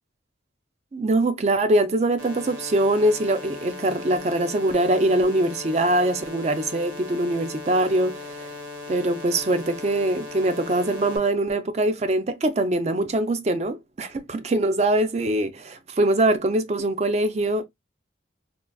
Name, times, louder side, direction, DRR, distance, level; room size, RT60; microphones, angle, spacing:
voice 1, 0.9-8.5 8.9-17.6, right 1 dB, 35° right, 0.4 m, -23 dB
sound 1, 2.2-11.2, left 2 dB, 85° right, 1.2 m, -38 dB
3.7 x 2.3 x 2.3 m
head